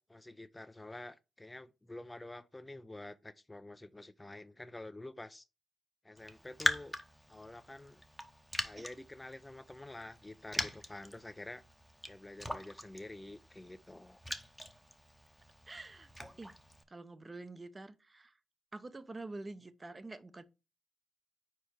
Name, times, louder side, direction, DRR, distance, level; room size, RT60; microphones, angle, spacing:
voice 1, 0.0-5.5 6.0-7.0 7.3-8.0 8.6-11.6 12.1-14.2, left 2 dB, 15° left, 0.4 m, -48 dB
Raindrop, 6.2-16.8, equal, ahead, 0.8 m, -42 dB
voice 2, 15.7-16.1 16.4-16.5 16.9-18.4 18.7-20.4, right 2 dB, 25° right, 0.6 m, -47 dB
4.5 x 4.4 x 4.8 m
cardioid pair, 70°, 0 cm